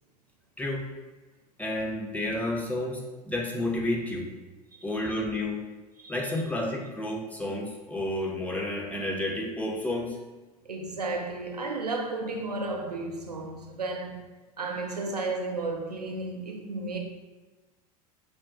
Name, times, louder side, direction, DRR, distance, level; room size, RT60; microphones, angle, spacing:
voice 1, 1.6-3.0 3.2-4.3 4.8-5.6 6.1-10.2, left 1 dB, 5° left, 0.6 m, -30 dB
voice 2, 4.7-5.2 6.0-6.4 10.6-14.3 14.6-17.0, right 3 dB, 90° right, 0.4 m, -33 dB
4.9 x 2.2 x 2.5 m
figure-of-eight pair, 80°, 20 cm